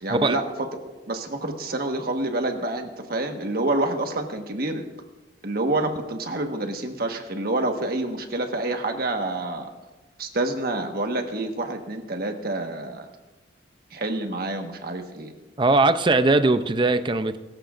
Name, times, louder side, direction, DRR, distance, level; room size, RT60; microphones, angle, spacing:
voice 1, 0.0-4.8 5.4-9.7 10.2-13.1 13.9-15.3, right 2 dB, 55° right, 4 dB, 1.5 m, -28 dB
voice 2, 15.6-17.4, right 2 dB, 25° right, 11 dB, 0.5 m, -20 dB
22.5 x 13.5 x 2.6 m, 1.1 s
head